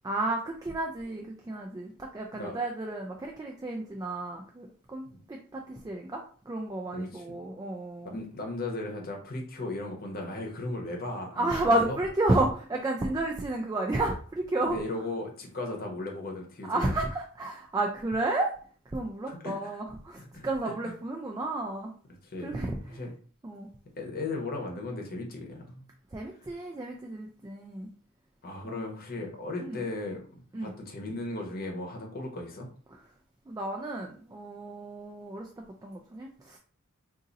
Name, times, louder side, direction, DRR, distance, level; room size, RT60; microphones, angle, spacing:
voice 1, 0.0-8.1 11.4-14.8 16.7-18.5 18.9-21.9 22.4-22.8 23.4-23.7 26.1-27.9 28.7-28.8 29.6-29.8 30.5-30.7 33.5-36.6, right 2 dB, 15° right, 1 dB, 0.3 m, -31 dB
voice 2, 6.9-7.4 8.0-12.0 14.6-16.9 19.3-19.8 20.2-20.9 22.2-22.6 22.9-23.1 24.0-25.9 28.4-30.2 30.6-32.7, left 2 dB, 45° left, 1 dB, 0.9 m, -36 dB
2.6 x 2.6 x 3.9 m, 0.43 s
head